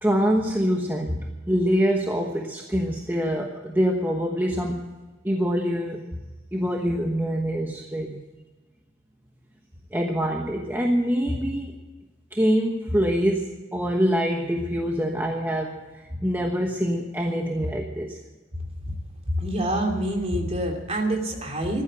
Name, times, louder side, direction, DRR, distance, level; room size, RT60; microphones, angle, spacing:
voice 1, 0.0-4.9 5.2-6.0 6.5-8.2 9.9-11.8 12.3-18.2, equal, 10° right, 1 dB, 1.2 m, -25 dB
voice 2, 19.3-21.8, right 1 dB, 30° right, 2 dB, 2.9 m, -26 dB
15.0 x 12.0 x 7.6 m, 1.2 s
head